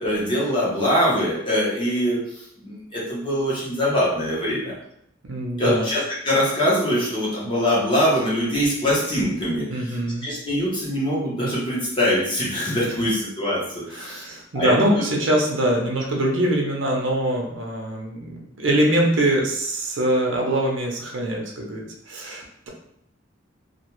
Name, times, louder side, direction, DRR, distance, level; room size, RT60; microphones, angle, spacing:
voice 1, 0.0-4.7 5.6-14.3 14.5-14.9, equal, 25° left, -7 dB, 0.9 m, -23 dB
voice 2, 5.2-5.8 9.7-10.3 13.9-22.7, right 1 dB, 75° right, 0 dB, 0.6 m, -23 dB
2.4 x 2.3 x 3.0 m, 0.74 s
head